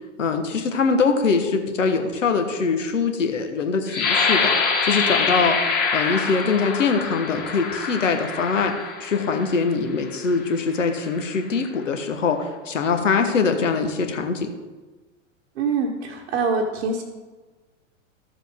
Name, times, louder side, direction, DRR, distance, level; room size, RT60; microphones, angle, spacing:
voice 1, 0.2-4.5 4.8-8.7 9.0-14.5, left 5 dB, 75° left, 6 dB, 1.3 m, -23 dB
sound 1, 3.9-9.5 10.2-10.4 10.8-11.3, left 5 dB, 25° left, 2.1 m, -25 dB
voice 2, 15.6-17.0, right 4 dB, 60° right, -1 dB, 1.3 m, -24 dB
13.5 x 7.2 x 3.6 m, 1.3 s
figure-of-eight pair, 95°, 38 cm